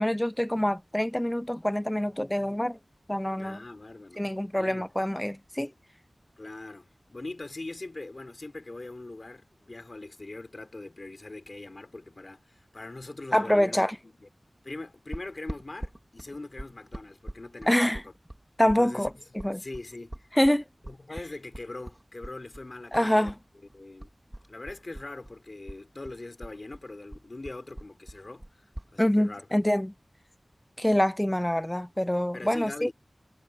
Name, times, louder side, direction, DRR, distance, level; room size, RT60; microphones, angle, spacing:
voice 1, 0.0-2.8 3.1-3.6 4.2-5.7 13.3-14.0 17.7-18.0 18.6-19.1 19.3-19.6 20.3-20.6 22.9-23.3 29.0-29.9 30.8-32.9, left 1 dB, 10° left, 0.7 m, -25 dB
voice 2, 3.4-4.3 4.5-4.9 6.4-14.3 14.6-18.1 18.6-20.3 20.8-23.4 23.7-24.1 24.5-29.5 32.3-32.9, left 2 dB, 50° left, 3.8 m, -42 dB
sound 1, 15.1-23.4 23.7-25.4 25.7-28.9, right 1 dB, 20° right, 3.7 m, -42 dB
wide cardioid pair, 60°, 0 cm